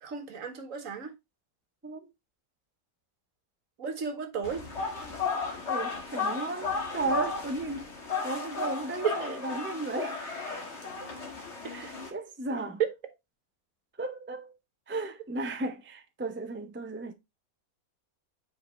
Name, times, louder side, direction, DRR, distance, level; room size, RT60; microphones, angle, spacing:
voice 1, 0.0-1.1 3.8-4.7 9.0-9.4, right 6 dB, 65° right, 1.5 m, -34 dB
sound 1, 4.4-12.1, left 5 dB, 50° left, 1.9 m, -34 dB
voice 2, 5.7-7.9 8.2-10.2 11.7-12.8 14.0-14.5 14.9-17.1, right 2 dB, 15° right, 0.4 m, -34 dB
7.6 x 4.6 x 3.1 m
omnidirectional pair, 1.5 m